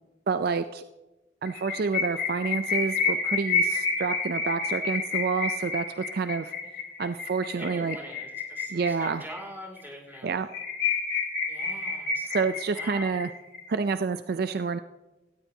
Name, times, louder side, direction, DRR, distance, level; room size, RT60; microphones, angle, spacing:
voice 1, 0.3-0.8 1.4-6.5 7.0-8.0 8.7-9.3 10.2-10.5 12.3-13.3 13.7-14.8, right 5 dB, 55° right, 10 dB, 0.4 m, -28 dB
sound 1, 1.5-9.4 9.8-9.9 10.1-10.2 10.5-13.6, left 4 dB, 55° left, 2.8 m, -29 dB
voice 2, 7.5-10.4 11.5-13.2, equal, 10° right, 0 dB, 2.8 m, -44 dB
18.0 x 13.5 x 2.8 m, 1.0 s
head